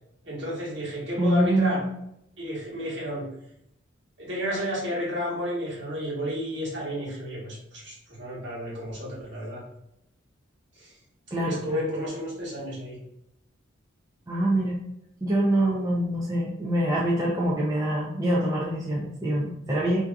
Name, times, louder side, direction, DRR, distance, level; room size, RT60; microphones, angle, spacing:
voice 1, 0.2-1.8 2.4-3.3 4.2-9.6 10.8-10.9 11.3-13.0, equal, 60° right, -6 dB, 1.1 m, -32 dB
voice 2, 1.2-1.8 11.3-11.8 14.3-14.8 15.2-20.0, right 1 dB, 15° right, -6 dB, 0.4 m, -25 dB
2.6 x 2.3 x 2.3 m, 0.79 s
head